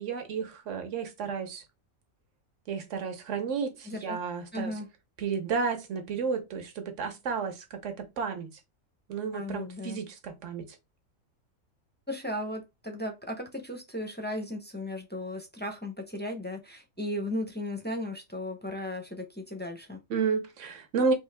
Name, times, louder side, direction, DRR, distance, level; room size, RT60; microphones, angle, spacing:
voice 1, 0.0-1.6 2.7-4.7 5.2-8.5 9.1-10.6 20.1-21.1, right 5 dB, 60° right, 1.2 m, -32 dB
voice 2, 3.9-4.2 4.5-4.9 9.3-10.0 12.1-20.0, left 1 dB, 15° left, 0.4 m, -36 dB
3.8 x 2.7 x 3.3 m
omnidirectional pair, 1.5 m